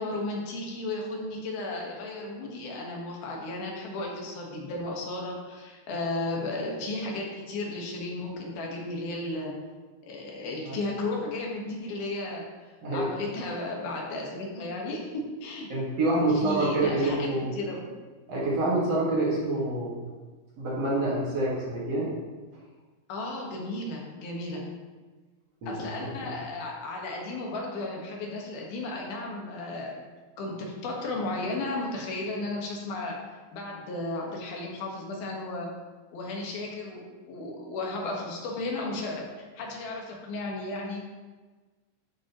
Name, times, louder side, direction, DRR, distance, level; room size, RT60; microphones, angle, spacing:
voice 1, 0.0-9.6 10.1-12.5 12.9-15.7 16.2-17.3 17.6-17.9 23.1-24.6 25.7-30.0 30.4-33.2 33.5-35.7 36.1-41.0, left 2 dB, 85° left, -1 dB, 3.5 m, -34 dB
voice 2, 15.7-17.5 18.3-20.0 20.6-22.1 25.6-25.9 26.2-26.3, right 2 dB, 50° right, -6 dB, 2.6 m, -27 dB
13.5 x 7.3 x 3.1 m, 1.3 s
omnidirectional pair, 4.2 m